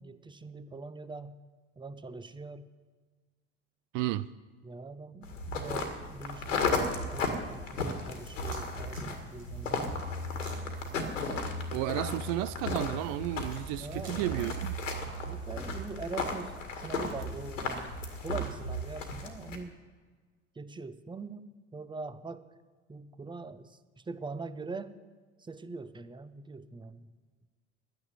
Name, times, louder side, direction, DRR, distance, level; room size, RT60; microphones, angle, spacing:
voice 1, 0.0-1.4 1.8-2.7 4.6-9.9 13.8-14.5 15.2-18.0 18.2-19.8 20.5-22.5 22.9-25.0 25.4-27.1, right 4 dB, 10° right, 0.9 m, -43 dB
voice 2, 3.9-4.3 11.7-14.7, right 16 dB, 55° right, 0.6 m, -32 dB
sound 1, 5.2-19.6, left 2 dB, 90° left, 1.9 m, -35 dB
sound 2, 8.3-14.7, right 3 dB, 75° right, 3.7 m, -56 dB
11.0 x 9.8 x 9.6 m
hypercardioid pair, 70°, 37 cm